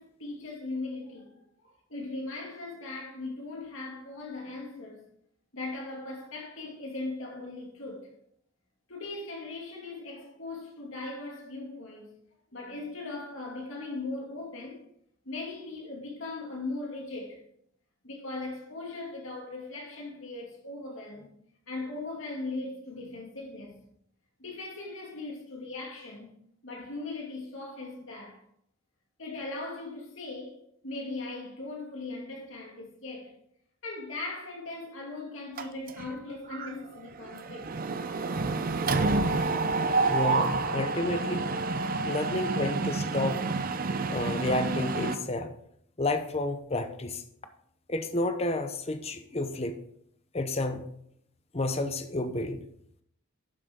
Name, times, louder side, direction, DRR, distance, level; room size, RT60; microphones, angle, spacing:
voice 1, 0.0-5.0 5.5-8.1 8.9-12.1 12.5-14.8 15.2-17.4 18.0-21.3 21.7-23.8 24.4-26.3 26.6-28.4 29.2-33.3 33.8-37.7, left 2 dB, 65° left, 2.4 m, -39 dB
Mechanisms, 35.6-36.2 36.5-36.7 37.0-45.1, right 3 dB, 40° right, 0.5 m, -29 dB
voice 2, 40.1-41.5 42.0-43.4 44.1-45.5 46.0-47.2 47.9-49.8 50.3-50.9 51.5-52.6, left 2 dB, 30° left, 0.7 m, -30 dB
11.5 x 6.3 x 3.6 m
head